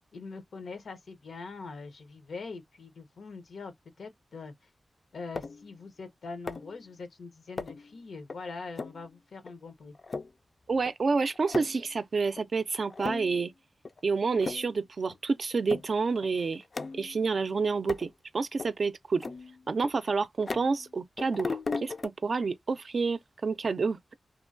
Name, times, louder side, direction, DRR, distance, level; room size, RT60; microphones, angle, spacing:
voice 1, 0.1-4.5 5.1-9.9, left 4 dB, 85° left, 0.6 m, -43 dB
sound 1, 5.4-5.7 6.5-6.8 7.6-7.9 8.3-8.4 8.8-9.0 9.5-9.6 10.0-10.3 10.9-11.0 11.2-11.8 12.4-12.5 12.9-13.4 13.9-14.0 14.3-14.8 15.1-15.2 15.7-15.9 16.2-17.2 17.9-18.1 18.6-18.7 19.2-20.9 21.2-22.1, left 4 dB, 55° left, 0.3 m, -37 dB
voice 2, 10.7-13.5 14.0-16.6 16.9-19.2 19.7-24.1, right 4 dB, 65° right, 0.3 m, -29 dB
3.0 x 2.1 x 2.4 m
cardioid pair, 65°, 0 cm